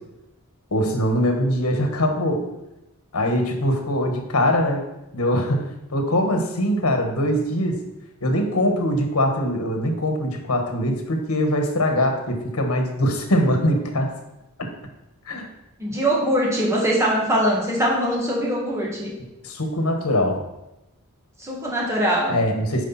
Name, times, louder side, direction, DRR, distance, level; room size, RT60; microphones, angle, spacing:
voice 1, 0.7-2.5 3.1-4.9 5.1-7.8 8.2-14.1 14.6-14.7 15.3-15.5 19.4-20.4 22.3-22.9, equal, 90° left, 4 dB, 1.4 m, -22 dB
voice 2, 15.8-19.1 21.4-22.4, equal, 15° right, -4 dB, 1.9 m, -22 dB
10.0 x 5.0 x 4.2 m, 0.93 s
head